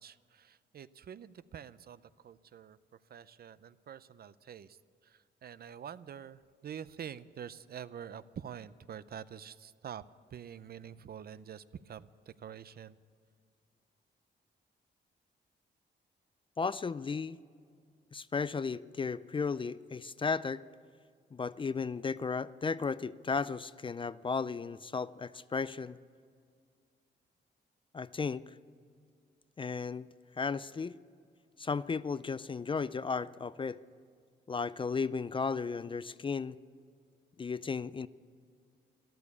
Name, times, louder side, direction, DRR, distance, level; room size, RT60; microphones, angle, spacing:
voice 1, 0.0-2.8 3.1-4.8 5.0-10.0 10.3-13.0, right 8 dB, 55° right, 16 dB, 0.5 m, -47 dB
voice 2, 16.6-17.4 18.1-20.6 21.3-26.0 27.9-28.5 29.6-30.1 30.4-31.0 31.6-33.8 34.5-36.6 37.4-38.1, left 5 dB, 25° left, 17 dB, 0.4 m, -34 dB
13.5 x 12.0 x 8.3 m, 2.1 s
cardioid pair, 100°, 19 cm